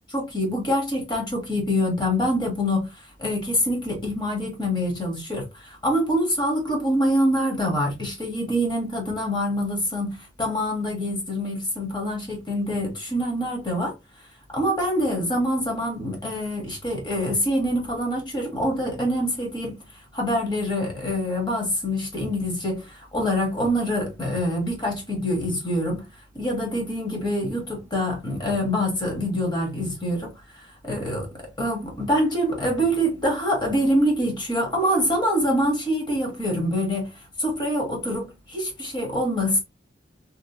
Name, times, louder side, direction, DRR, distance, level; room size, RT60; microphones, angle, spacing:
voice 1, 0.1-2.9 3.2-13.9 14.5-19.8 20.1-26.0 26.3-31.3 31.6-37.1 37.4-39.6, equal, 25° left, 1.1 m, -25 dB
2.9 x 2.2 x 2.7 m
head